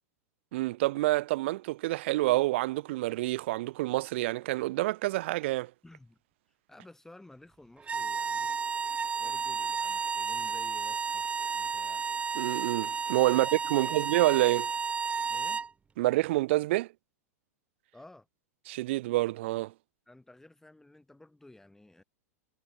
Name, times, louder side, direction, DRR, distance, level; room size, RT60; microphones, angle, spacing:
voice 1, 0.5-5.7 12.4-14.7 16.0-16.9 18.7-19.7, right 18 dB, 50° right, 0.8 m, -28 dB
voice 2, 5.8-6.2 6.7-8.6 9.2-11.3 11.5-12.1 13.3-14.1 15.3-15.6 17.9-18.3 20.1-22.0, left 2 dB, 5° left, 5.5 m, -54 dB
sound 1, 7.8-15.7, right 5 dB, 15° right, 1.4 m, -32 dB
figure-of-eight pair, 95°, 8 cm